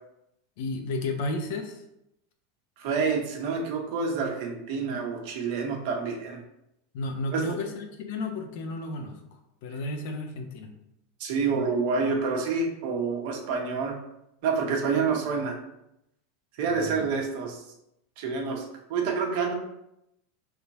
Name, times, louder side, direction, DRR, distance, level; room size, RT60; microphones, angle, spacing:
voice 1, 0.6-1.8 6.9-9.2 9.6-10.7 16.7-17.0, left 2 dB, 65° left, 4 dB, 0.8 m, -33 dB
voice 2, 2.8-6.4 7.3-7.6 11.2-13.9 14.4-15.6 16.6-17.6 18.2-18.6 18.9-19.5, right 5 dB, 60° right, 1 dB, 1.1 m, -28 dB
3.6 x 2.8 x 4.7 m, 0.82 s
supercardioid pair, 145°, 0 cm